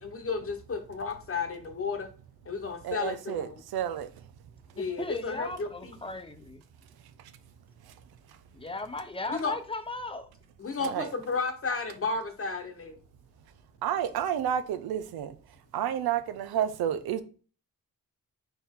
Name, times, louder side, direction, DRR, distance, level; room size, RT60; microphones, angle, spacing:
voice 1, 0.0-2.1 2.4-3.5 4.8-6.0 9.3-9.5 10.6-13.0, left 4 dB, 40° left, 1.1 m, -33 dB
voice 2, 2.8-4.2 7.2-7.3 7.8-7.9 10.8-11.1 13.8-15.4 15.7-17.2, right 9 dB, 90° right, 0.5 m, -30 dB
voice 3, 4.8-6.6 8.5-10.3, left 2 dB, 15° left, 0.7 m, -37 dB
4.3 x 2.7 x 3.6 m
cardioid pair, 55°, 36 cm